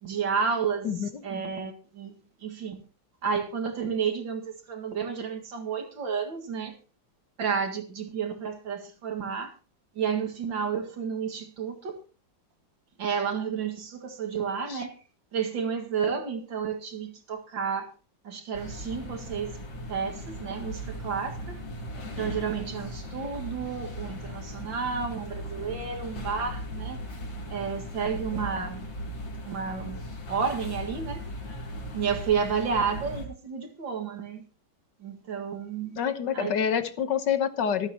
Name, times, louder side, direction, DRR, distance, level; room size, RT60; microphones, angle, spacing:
voice 1, 0.0-0.9 1.2-2.8 3.2-6.7 7.4-9.5 10.0-12.0 13.0-14.9 15.3-17.9 18.2-19.6 19.9-21.6 22.0-27.0 27.5-28.8 29.4-30.0 30.3-31.3 31.9-34.4 35.0-36.0 36.3-36.5, right 6 dB, 75° right, 2.7 m, -31 dB
sound 1, 18.5-33.3, equal, 80° left, 3.5 m, -38 dB
voice 2, 36.0-37.9, left 8 dB, 65° left, 1.7 m, -27 dB
25.5 x 8.9 x 2.9 m
omnidirectional pair, 2.1 m